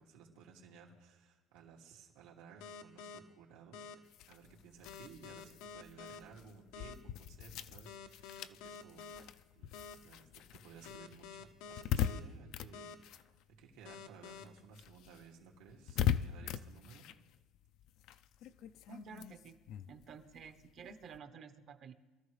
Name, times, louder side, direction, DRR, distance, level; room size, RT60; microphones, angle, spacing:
voice 1, 0.0-9.7 10.0-17.1, right 5 dB, 85° right, -1 dB, 2.6 m, -57 dB
sound 1, 2.6-3.2 3.7-3.9 4.8-6.2 6.7-6.9 7.8-9.2 9.7-9.9 10.8-12.2 12.7-12.9 13.8-14.4, left 6 dB, 85° left, 0.9 m, -48 dB
sound 2, 4.1-14.0 14.2-21.2, left 10 dB, 55° left, 0.4 m, -41 dB
voice 2, 18.9-19.6 19.9-21.9, right 5 dB, 40° right, 8 dB, 0.9 m, -51 dB
23.5 x 13.0 x 3.3 m, 1.2 s
cardioid pair, 155°, 0 cm